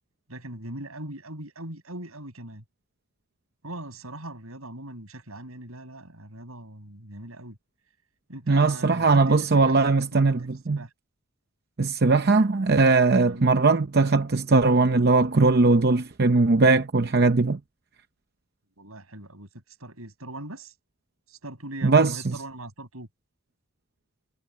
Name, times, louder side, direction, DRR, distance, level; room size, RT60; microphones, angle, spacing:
voice 1, 0.3-2.6 3.6-7.6 8.3-10.9 13.2-13.5 18.8-19.5 19.8-20.7 21.3-23.1, right 1 dB, 80° right, 6.8 m, -40 dB
voice 2, 8.5-10.8 11.8-17.6 21.8-22.4, right 3 dB, 45° right, 0.7 m, -20 dB
head